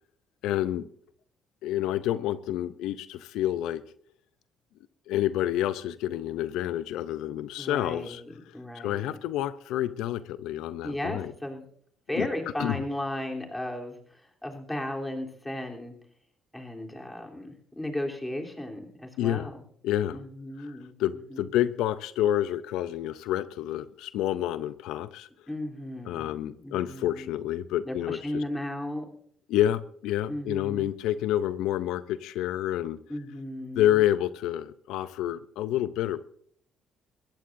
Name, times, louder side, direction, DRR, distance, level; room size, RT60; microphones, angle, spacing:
voice 1, 0.4-0.8 1.6-3.8 5.1-8.2 8.7-11.3 12.1-12.3 12.6-12.8 19.2-19.5 19.8-20.2 20.6-25.3 26.1-28.4 29.5-33.0 33.8-36.2, left 12 dB, 85° left, 14 dB, 0.5 m, -28 dB
voice 2, 7.6-9.2 10.8-11.6 12.1-15.9 16.5-19.6 20.1-20.9 21.3-21.5 25.5-27.3 27.8-29.1 30.3-30.9 33.1-34.0, left 1 dB, 10° left, 1 dB, 3.3 m, -35 dB
22.0 x 15.0 x 2.6 m, 0.63 s
supercardioid pair, 75°, 0 cm